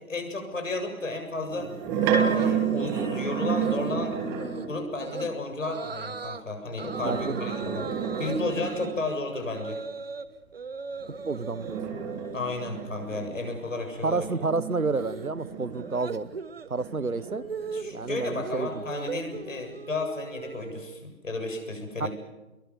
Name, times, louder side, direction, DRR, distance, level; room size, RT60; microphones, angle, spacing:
voice 1, 0.0-1.7 2.3-4.2 4.7-7.9 8.2-9.8 12.3-14.3 17.7-22.1, left 2 dB, 65° left, 7.7 m, -33 dB
sound 1, 1.4-4.8 6.7-9.1 11.0-16.2 16.8-18.5, right 7 dB, 5° right, 1.3 m, -31 dB
sound 2, 2.0-3.2 3.6-4.0 4.4-4.7 5.0-5.3 5.6-6.4 6.8-10.3 10.5-11.8 12.1-12.6 12.8-21.0, right 5 dB, 45° right, 1.3 m, -38 dB
voice 2, 7.0-7.5 11.2-11.8 14.0-16.4 16.7-17.5 17.9-18.8 22.0-22.1, right 3 dB, 90° right, 1.3 m, -30 dB
26.5 x 22.5 x 7.8 m
figure-of-eight pair, 155°, 42 cm